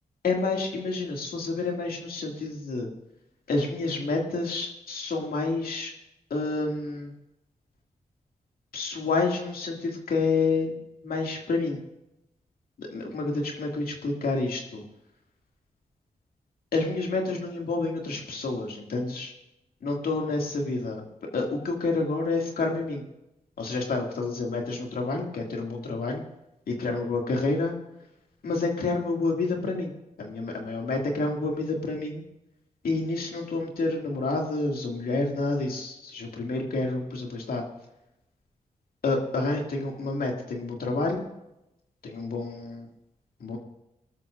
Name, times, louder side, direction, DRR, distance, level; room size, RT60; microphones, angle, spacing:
voice 1, 0.2-2.9 3.5-6.0 6.3-7.1 8.7-10.7 11.0-11.8 12.8-14.8 16.7-19.3 19.8-21.0 21.3-23.0 23.6-26.2 26.7-27.7 28.4-29.9 30.2-32.2 32.8-37.6 39.0-41.3 42.0-42.9 43.4-43.6, left 3 dB, 75° left, 1 dB, 2.2 m, -29 dB
19.5 x 12.5 x 2.5 m, 0.88 s
supercardioid pair, 40°, 15 cm